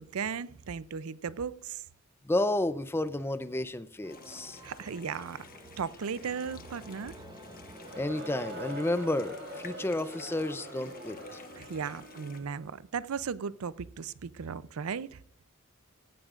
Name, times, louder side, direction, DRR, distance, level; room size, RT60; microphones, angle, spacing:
voice 1, 0.0-1.9 4.6-7.2 11.6-15.2, right 6 dB, 85° right, 0.5 m, -36 dB
voice 2, 2.2-4.6 8.0-11.4, left 1 dB, 10° left, 0.4 m, -31 dB
sound 1, 4.0-9.7, right 1 dB, 20° right, 0.8 m, -53 dB
sound 2, 4.1-12.4, left 4 dB, 45° left, 1.2 m, -50 dB
Crowd, 7.7-12.7, right 1 dB, 55° right, 3.0 m, -44 dB
16.5 x 14.0 x 2.5 m
head